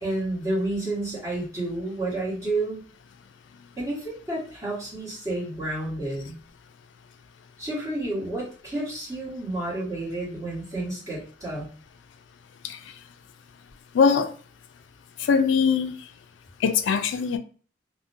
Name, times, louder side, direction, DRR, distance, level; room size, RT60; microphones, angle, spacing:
voice 1, 0.0-2.8 3.8-6.4 7.6-11.7, right 2 dB, 15° right, 1.2 m, -30 dB
voice 2, 13.9-14.3 15.2-16.0 16.6-17.4, left 6 dB, 75° left, 0.3 m, -21 dB
2.5 x 2.1 x 2.6 m
head